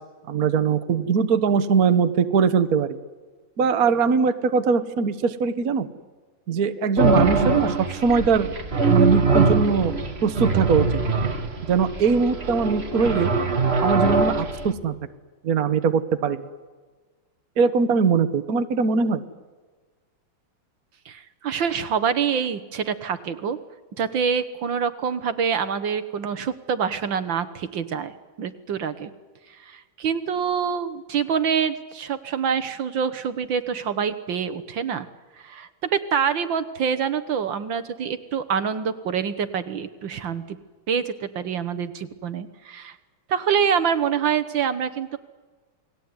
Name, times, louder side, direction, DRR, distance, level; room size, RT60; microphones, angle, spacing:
voice 1, 0.3-2.9 3.6-5.9 6.5-8.5 8.9-10.0 10.2-11.0 11.7-13.3 13.8-14.9 15.4-16.5 17.6-19.2, right 5 dB, 50° right, 10 dB, 1.6 m, -21 dB
sound 1, 7.0-14.7, right 3 dB, 30° right, 1.8 m, -22 dB
voice 2, 21.1-23.6 24.0-28.1 28.4-29.1 29.5-35.1 35.4-40.6 40.9-43.0 43.3-45.2, right 7 dB, 65° right, 12 dB, 1.8 m, -26 dB
29.5 x 20.5 x 9.6 m, 1.4 s
omnidirectional pair, 2.3 m